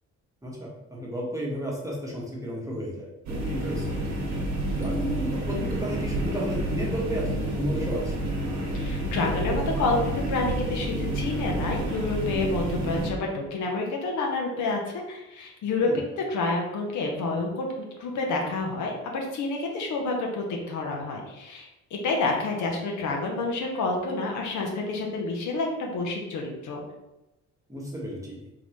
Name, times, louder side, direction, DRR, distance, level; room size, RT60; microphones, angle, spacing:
voice 1, 0.4-4.0 4.7-8.1 15.8-16.0 27.7-28.4, equal, 10° right, -3 dB, 1.0 m, -33 dB
sound 1, 3.3-13.1, right 1 dB, 65° right, 0.9 m, -29 dB
voice 2, 8.7-14.8 15.1-15.9 16.2-17.7 18.0-21.7 22.0-26.8, left 3 dB, 75° left, 0 dB, 0.9 m, -29 dB
3.8 x 2.5 x 3.1 m, 0.94 s
cardioid pair, 90°, 30 cm